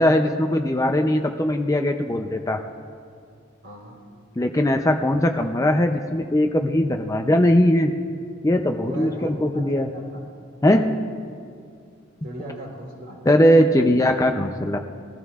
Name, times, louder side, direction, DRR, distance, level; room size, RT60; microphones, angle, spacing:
voice 1, 0.0-2.6 4.4-7.9 8.4-9.9 10.6-10.9 13.3-14.8, left 1 dB, 15° left, 5 dB, 0.5 m, -20 dB
voice 2, 3.6-4.1 8.8-10.2 12.2-13.2, right 1 dB, 60° right, -2 dB, 3.7 m, -38 dB
22.0 x 14.5 x 2.4 m, 2.3 s
head